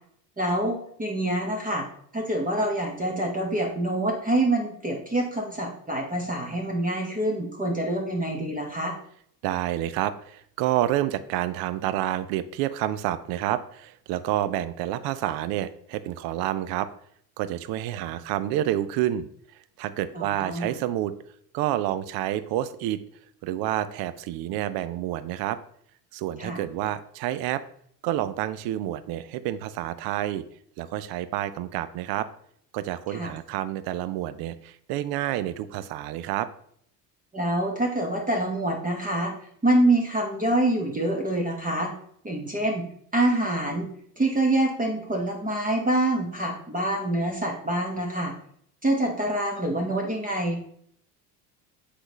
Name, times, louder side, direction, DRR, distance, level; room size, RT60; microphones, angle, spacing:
voice 1, 0.4-1.8 2.1-8.9 20.1-20.8 26.4-26.6 33.1-33.3 37.3-39.3 39.6-41.9 42.2-42.8 43.1-43.9 44.2-48.3 48.8-50.6, right 1 dB, 15° right, 0 dB, 1.2 m, -26 dB
voice 2, 9.4-16.9 17.4-19.3 19.8-21.1 21.5-23.0 23.4-25.6 26.1-27.6 28.0-30.4 30.8-32.3 32.7-36.5, right 13 dB, 50° right, 14 dB, 0.5 m, -29 dB
7.7 x 4.1 x 3.0 m, 0.66 s
hypercardioid pair, 70°, 48 cm